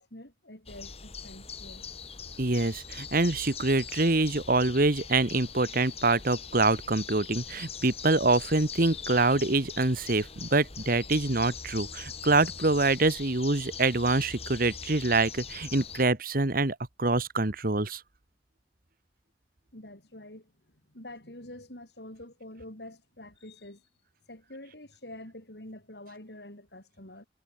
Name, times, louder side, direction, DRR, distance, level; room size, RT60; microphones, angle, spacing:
voice 1, 0.0-1.8 19.7-20.5 20.9-23.8 24.3-27.3, left 1 dB, 65° left, 6.1 m, -46 dB
sound 1, 0.7-16.1, left 6 dB, 35° left, 3.4 m, -42 dB
voice 2, 2.4-18.0, right 2 dB, 55° right, 1.7 m, -25 dB
head